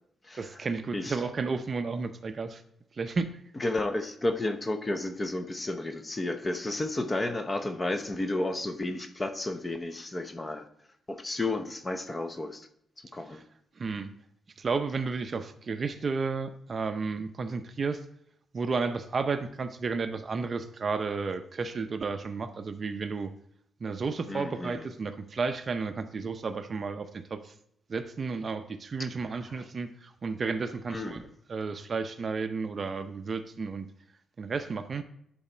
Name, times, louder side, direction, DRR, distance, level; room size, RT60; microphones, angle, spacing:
voice 1, 0.4-2.6 2.9-3.4 13.3-13.4 13.8-14.1 14.6-18.0 18.5-23.3 23.8-27.5 27.9-31.2 31.5-33.9 34.4-35.0, right 4 dB, 40° right, 9 dB, 0.6 m, -32 dB
voice 2, 3.6-10.7 11.1-12.7 13.0-13.4 24.3-24.9 29.0-29.1 29.5-29.6 30.9-31.3, left 2 dB, 20° left, 7 dB, 0.8 m, -32 dB
11.5 x 4.1 x 4.4 m, 0.72 s
cardioid pair, 130°, 0 cm